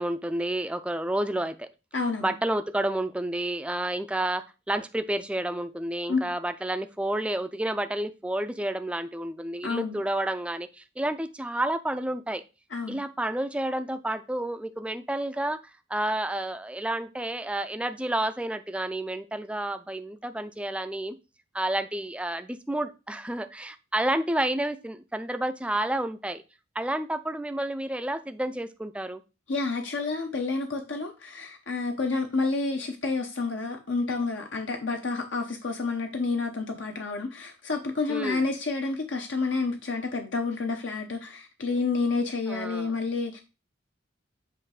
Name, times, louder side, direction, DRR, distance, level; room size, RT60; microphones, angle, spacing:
voice 1, 0.0-1.7 2.2-12.4 12.9-15.6 15.9-21.2 21.5-26.4 26.8-29.2 38.1-38.4 42.5-42.9, right 1 dB, 5° right, 0.4 m, -30 dB
voice 2, 1.9-2.3 6.1-6.2 9.6-10.0 12.7-13.0 29.5-43.4, left 3 dB, 70° left, 0.7 m, -29 dB
7.8 x 2.6 x 4.8 m
head